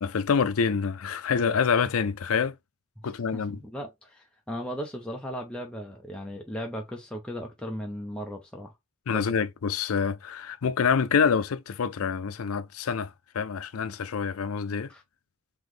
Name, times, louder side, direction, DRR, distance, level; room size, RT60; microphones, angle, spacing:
voice 1, 0.0-2.6 3.0-3.6 9.1-14.9, left 6 dB, 85° left, 0.5 m, -26 dB
voice 2, 3.0-8.7 9.1-9.3 14.9-15.0, equal, 5° left, 0.6 m, -37 dB
3.9 x 3.0 x 3.1 m
head